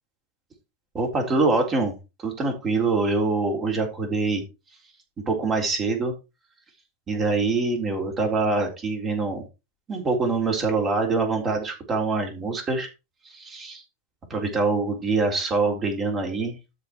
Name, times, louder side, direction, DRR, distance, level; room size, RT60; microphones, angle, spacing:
voice 1, 0.9-4.4 5.3-6.1 7.1-9.4 9.9-12.9 13.2-13.8 14.3-16.6, right 3 dB, 25° right, 2 dB, 3.8 m, -24 dB
13.0 x 4.8 x 4.5 m, 0.27 s
figure-of-eight pair, 90°, 0 cm